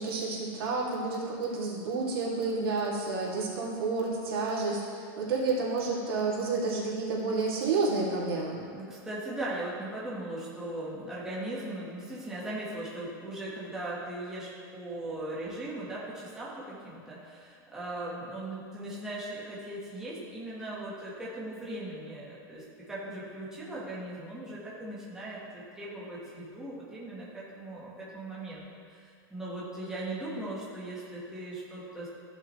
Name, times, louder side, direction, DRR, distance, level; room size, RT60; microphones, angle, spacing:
voice 1, 0.0-8.6, right 3 dB, 85° right, -5 dB, 2.4 m, -30 dB
voice 2, 8.7-32.1, right 1 dB, 5° right, -8 dB, 1.3 m, -39 dB
14.5 x 5.9 x 3.1 m, 2.2 s
supercardioid pair, 170°, 12 cm